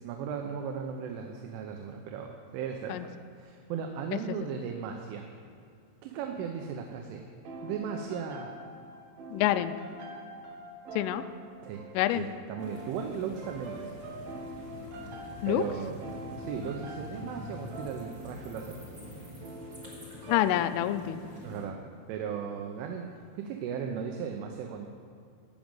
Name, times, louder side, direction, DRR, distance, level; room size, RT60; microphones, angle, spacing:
voice 1, 0.0-5.3 6.0-7.3 7.6-8.6 11.6-11.8 12.1-14.0 15.5-16.0 16.4-18.8 21.4-21.8 22.1-24.9, right 7 dB, 80° right, 3 dB, 3.2 m, -37 dB
sound 1, 7.4-21.1, right 1 dB, 65° right, 2.7 m, -45 dB
voice 2, 9.3-9.7 11.0-11.2 12.0-12.3 15.4-15.6 20.3-21.2, left 13 dB, 90° left, 11 dB, 3.2 m, -26 dB
sound 2, 12.6-21.6, left 1 dB, 25° right, 3.1 m, -46 dB
15.0 x 6.2 x 8.9 m, 2.5 s
omnidirectional pair, 5.7 m